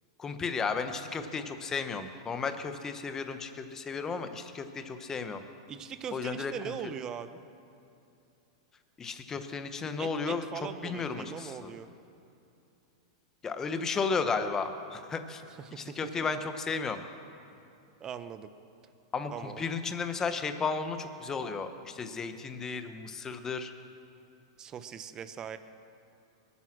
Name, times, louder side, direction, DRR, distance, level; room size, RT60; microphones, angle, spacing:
voice 1, 0.2-5.4 6.1-6.5 9.0-10.4 10.8-11.7 13.4-15.4 15.8-17.0 19.1-23.7, left 5 dB, 20° left, 8 dB, 1.2 m, -34 dB
voice 2, 5.7-7.4 10.0-11.9 15.5-16.0 18.0-18.5 19.3-19.7 24.6-25.6, right 8 dB, 25° right, 11 dB, 0.9 m, -40 dB
22.0 x 9.8 x 6.2 m, 2.7 s
hypercardioid pair, 125°, 3 cm